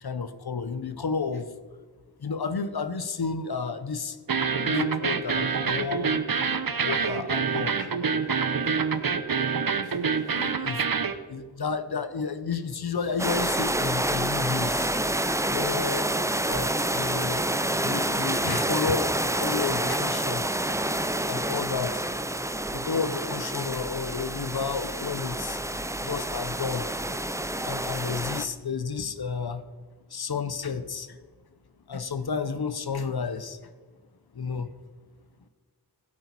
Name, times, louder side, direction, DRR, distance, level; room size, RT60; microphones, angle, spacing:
voice 1, 0.0-1.5 2.2-4.2 4.6-6.2 6.8-8.0 9.8-10.9 11.3-14.9 15.5-16.1 16.4-22.1 22.7-25.6 26.0-26.9 27.6-29.6 30.1-31.2 31.9-33.6 34.3-34.7, left 5 dB, 70° left, 12 dB, 0.8 m, -32 dB
sound 1, 4.3-11.2, right 5 dB, 60° right, 0.9 m, -26 dB
sound 2, 13.2-28.5, right 1 dB, 10° right, 0.6 m, -28 dB
16.0 x 8.5 x 4.2 m, 1.5 s
wide cardioid pair, 70°, 39 cm